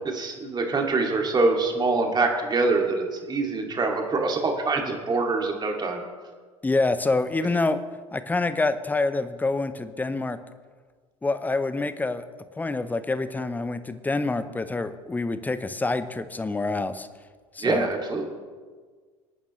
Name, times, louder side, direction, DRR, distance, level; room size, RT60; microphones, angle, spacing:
voice 1, 0.1-6.0 17.6-18.2, right 3 dB, 25° right, 2 dB, 2.3 m, -24 dB
voice 2, 6.6-7.8 8.1-10.4 11.2-12.3 12.6-17.1 17.5-17.9, left 3 dB, 10° left, 12 dB, 0.8 m, -26 dB
27.0 x 9.2 x 3.2 m, 1.5 s
figure-of-eight pair, 75°, 18 cm